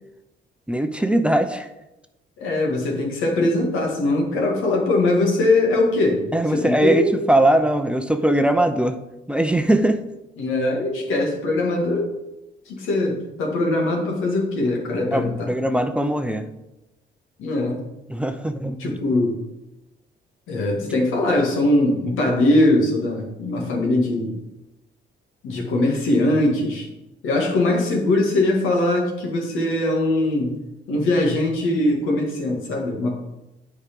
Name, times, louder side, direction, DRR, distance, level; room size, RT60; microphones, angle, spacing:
voice 1, 0.7-1.7 6.3-9.0 9.3-10.0 15.1-16.5 18.1-18.9, right 1 dB, 5° right, 8 dB, 0.6 m, -20 dB
voice 2, 2.4-6.2 6.5-7.1 10.4-12.1 12.7-15.5 17.4-17.8 18.8-19.4 20.5-24.3 25.4-26.9 27.2-30.6 30.9-33.2, left 2 dB, 90° left, 0 dB, 2.1 m, -21 dB
8.7 x 4.8 x 5.3 m, 0.95 s
cardioid pair, 90°, 20 cm